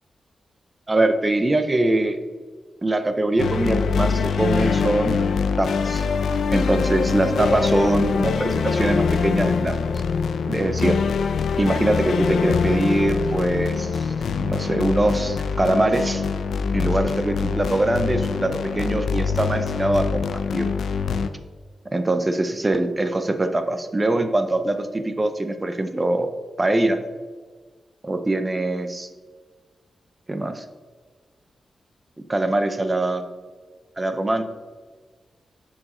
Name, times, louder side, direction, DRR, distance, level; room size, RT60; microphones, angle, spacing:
voice 1, 0.9-2.2 2.8-5.2 5.6-6.1 6.5-9.8 10.5-11.0 11.6-16.2 16.7-20.7 21.9-26.3 26.6-27.0 28.0-29.1 30.3-30.6 32.3-33.3 34.0-34.4, right 2 dB, 15° right, 8 dB, 0.6 m, -23 dB
sound 1, 3.4-21.3, left 5 dB, 70° left, 0.5 m, -24 dB
11.0 x 4.8 x 4.3 m, 1.5 s
wide cardioid pair, 175°, 0 cm